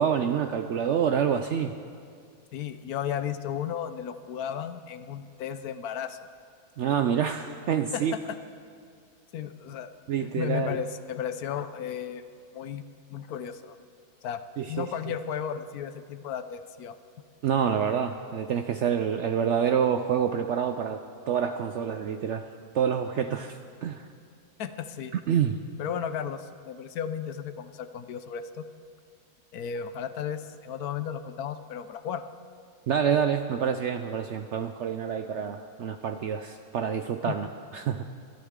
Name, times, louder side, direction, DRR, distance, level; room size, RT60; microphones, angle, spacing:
voice 1, 0.0-1.7 6.8-8.1 10.1-10.8 14.6-14.9 17.4-21.0 21.3-22.4 22.7-24.1 25.3-25.6 32.9-37.5 37.7-38.0, right 8 dB, 70° right, 8 dB, 0.7 m, -27 dB
voice 2, 2.5-6.2 7.9-8.4 9.3-9.9 10.2-12.2 12.5-12.8 13.1-13.8 14.2-14.4 14.7-17.0 24.6-25.1 25.8-28.7 29.5-32.2 37.3-37.4, left 8 dB, 75° left, 11 dB, 1.1 m, -34 dB
23.0 x 13.0 x 3.7 m, 2.2 s
omnidirectional pair, 1.7 m